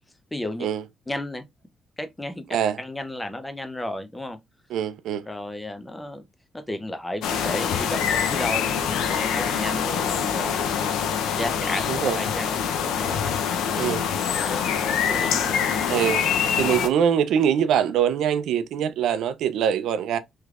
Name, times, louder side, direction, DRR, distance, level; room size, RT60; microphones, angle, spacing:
voice 1, 0.3-0.7 1.1-1.4 2.0-2.4 2.8-4.4 5.3-6.2 6.5-8.7 9.0-10.7 11.2-12.6 12.8-13.3 14.4-15.6, left 1 dB, 10° left, 0.6 m, -33 dB
voice 2, 4.7-5.2 11.9-12.2 13.8-14.0 15.9-16.3 16.6-20.2, right 9 dB, 80° right, 0.4 m, -23 dB
sound 1, 7.2-16.9, left 7 dB, 85° left, 0.5 m, -25 dB
3.3 x 3.2 x 2.4 m
cardioid pair, 90°, 0 cm